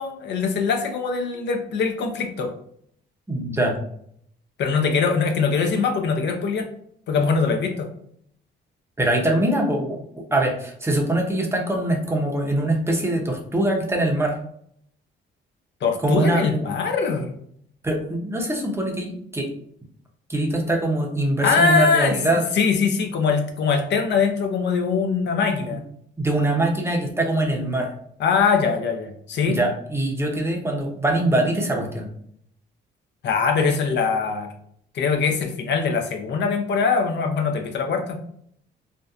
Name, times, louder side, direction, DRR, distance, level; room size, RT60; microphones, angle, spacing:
voice 1, 0.0-2.5 4.6-6.7 7.1-7.9 15.8-17.3 21.4-22.1 22.5-25.8 28.2-29.6 33.2-34.5 34.9-38.2, left 5 dB, 60° left, 4 dB, 0.5 m, -22 dB
voice 2, 3.3-3.8 9.0-10.0 10.3-14.3 16.0-16.7 17.8-19.5 20.3-22.4 26.2-27.9 29.5-32.1, right 1 dB, 15° right, 0 dB, 0.6 m, -23 dB
2.6 x 2.1 x 2.3 m, 0.67 s
cardioid pair, 90°, 20 cm